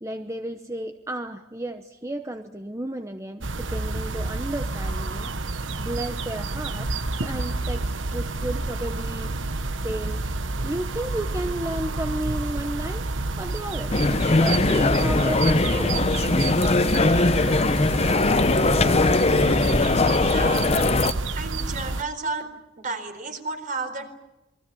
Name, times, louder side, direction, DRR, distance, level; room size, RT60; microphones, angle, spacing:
voice 1, 0.0-9.6 9.8-10.2 10.6-16.0, right 1 dB, 15° right, 6 dB, 1.0 m, -33 dB
sound 1, 3.4-22.0, right 2 dB, 85° right, 1.2 m, -29 dB
sound 2, 13.9-21.1, left 2 dB, 35° left, 0.8 m, -20 dB
voice 2, 20.2-20.7 21.3-22.5 22.8-24.1, right 3 dB, 45° right, 7 dB, 4.3 m, -32 dB
28.5 x 23.5 x 7.1 m, 0.98 s
head